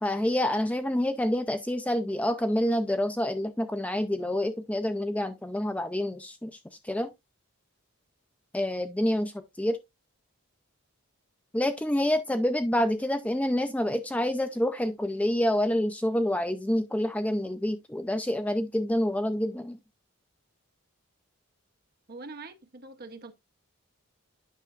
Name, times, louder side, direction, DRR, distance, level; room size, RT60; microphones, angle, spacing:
voice 1, 0.0-6.6 6.8-7.1 8.5-9.8 11.5-19.8, left 1 dB, 5° left, 0.3 m, -27 dB
voice 2, 22.1-23.3, right 3 dB, 45° right, 0.8 m, -43 dB
9.1 x 5.8 x 2.4 m
head